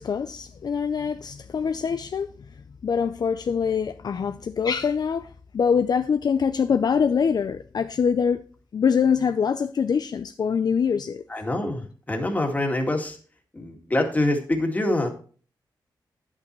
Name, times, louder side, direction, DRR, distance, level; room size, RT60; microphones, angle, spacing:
voice 1, 0.0-2.3 2.8-8.4 8.7-11.2, left 6 dB, 55° left, 0.5 m, -24 dB
voice 2, 11.3-13.2 13.5-15.1, left 1 dB, 20° left, 2.1 m, -25 dB
11.0 x 8.7 x 3.1 m
wide cardioid pair, 115°, 8 cm